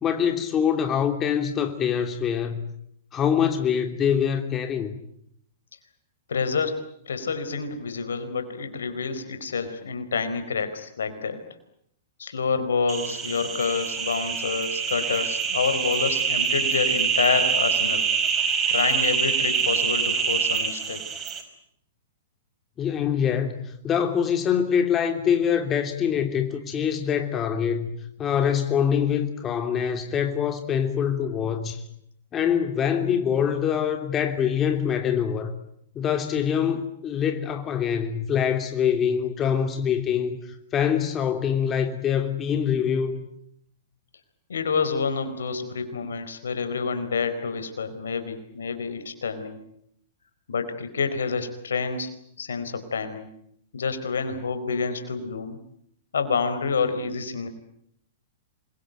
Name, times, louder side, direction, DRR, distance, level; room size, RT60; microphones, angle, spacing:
voice 1, 0.0-2.6 3.1-4.9 22.8-27.9 28.2-31.8 32.3-35.5 35.9-43.2, left 8 dB, 25° left, 6 dB, 3.1 m, -24 dB
voice 2, 6.3-11.4 12.2-18.1 18.7-21.0 44.5-49.6 50.5-52.1 52.4-53.3 53.7-55.6 56.1-57.5, left 5 dB, 80° left, 10 dB, 4.4 m, -28 dB
sound 1, 12.9-21.4, right 6 dB, 25° right, 5.2 m, -25 dB
27.5 x 22.5 x 9.3 m, 0.71 s
hypercardioid pair, 115°, 0 cm